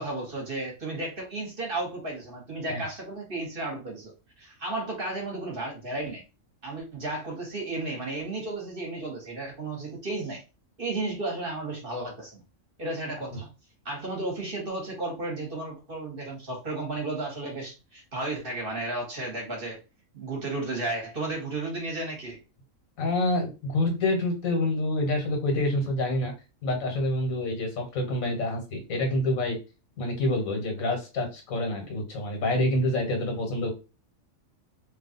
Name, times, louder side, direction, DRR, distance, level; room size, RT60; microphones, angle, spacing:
voice 1, 0.0-4.1 4.4-6.2 6.6-10.4 10.8-12.4 12.8-13.5 13.8-19.8 20.1-22.4, right 2 dB, 45° right, -1 dB, 1.4 m, -33 dB
voice 2, 23.0-26.3 26.6-29.6 30.0-33.7, left 1 dB, 80° left, 3 dB, 1.5 m, -27 dB
3.2 x 2.3 x 3.9 m, 0.29 s
omnidirectional pair, 1.4 m